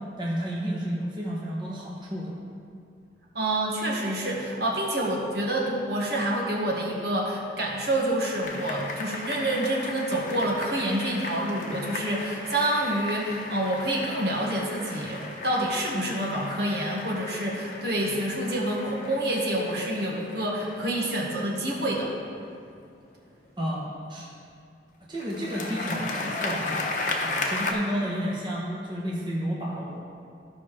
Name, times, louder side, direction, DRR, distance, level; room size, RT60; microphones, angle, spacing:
voice 1, 0.2-2.3 23.6-24.3 25.1-30.0, equal, 25° right, -4 dB, 1.1 m, -31 dB
voice 2, 3.3-22.1, right 1 dB, 65° right, -3 dB, 1.5 m, -27 dB
sound 1, 8.4-22.5 25.1-27.7, left 3 dB, 45° left, 0.9 m, -35 dB
14.5 x 5.6 x 3.3 m, 2.3 s
head